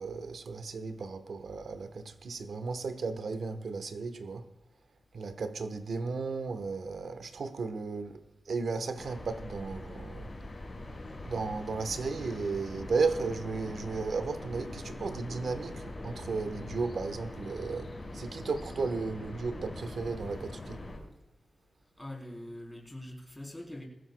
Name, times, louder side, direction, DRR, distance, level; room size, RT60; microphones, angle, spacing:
voice 1, 0.0-4.5 5.1-8.2 8.5-10.3 11.2-20.8, right 4 dB, 80° right, 1.2 m, -34 dB
sound 1, 9.0-21.0, left 2 dB, 40° left, 5.3 m, -42 dB
voice 2, 22.0-23.9, left 1 dB, 10° left, 3.7 m, -43 dB
20.0 x 16.0 x 2.3 m
wide cardioid pair, 110°, 0 cm